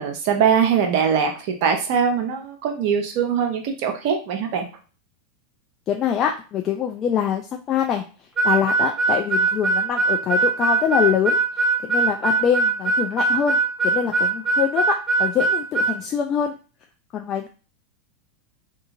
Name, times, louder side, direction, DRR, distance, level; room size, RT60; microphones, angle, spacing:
voice 1, 0.0-4.6, right 7 dB, 55° right, 4 dB, 0.8 m, -22 dB
voice 2, 5.9-8.0 8.4-11.4 11.8-13.6 13.8-14.8 15.2-16.5 17.1-17.5, left 8 dB, 40° left, 2 dB, 0.4 m, -24 dB
Harmonica, 8.4-16.0, right 4 dB, 20° right, 0.9 m, -20 dB
2.7 x 2.5 x 2.5 m, 0.35 s
hypercardioid pair, 95°, 0 cm